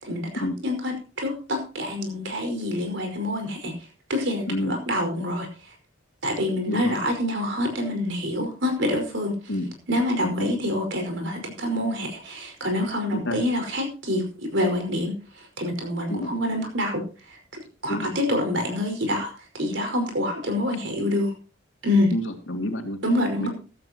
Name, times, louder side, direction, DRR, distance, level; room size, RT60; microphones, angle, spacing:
voice 1, 0.0-3.7 4.1-5.5 6.2-9.3 9.9-15.1 15.6-17.0 17.8-21.3 21.8-22.1 23.0-23.5, left 1 dB, 70° right, 4 dB, 5.1 m, -26 dB
voice 2, 4.5-4.8 6.6-6.9 9.5-9.7 10.2-10.5 13.1-13.4 16.1-16.3 17.9-18.1 22.1-23.0 23.4-23.5, left 1 dB, 80° left, 5 dB, 2.6 m, -28 dB
15.0 x 14.0 x 2.9 m, 0.34 s
head